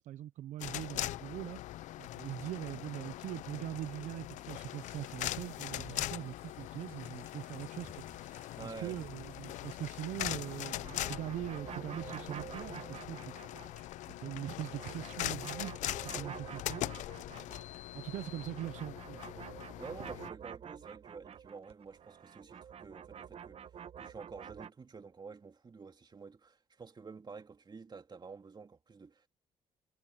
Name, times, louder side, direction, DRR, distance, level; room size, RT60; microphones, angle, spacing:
voice 1, 0.0-1.6 2.0-13.3 13.7-13.8 14.2-16.9 17.3-17.5 17.9-19.2, right 13 dB, 75° right, 0.8 m, -42 dB
sound 1, 0.6-20.3, left 15 dB, 75° left, 0.7 m, -41 dB
sound 2, 4.8-10.8, right 2 dB, 20° right, 4.8 m, -61 dB
voice 2, 8.6-9.0 19.8-23.7 24.0-29.3, right 5 dB, 35° right, 2.8 m, -49 dB
sound 3, 10.3-13.9 14.2-17.9 18.1-24.7, right 8 dB, 55° right, 1.2 m, -49 dB
supercardioid pair, 65°, 13 cm